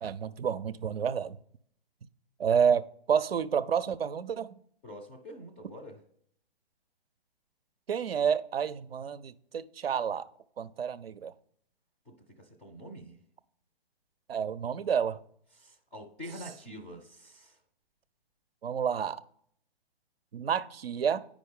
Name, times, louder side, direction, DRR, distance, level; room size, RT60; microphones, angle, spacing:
voice 1, 0.0-1.4 2.4-4.5 7.9-10.3 10.6-11.3 14.3-15.2 18.6-19.2 20.3-21.3, right 7 dB, 80° right, 0.5 m, -29 dB
voice 2, 4.8-6.0 12.1-13.2 15.6-17.6, equal, 10° left, 0.4 m, -46 dB
9.2 x 5.0 x 3.6 m
figure-of-eight pair, 130°, 30 cm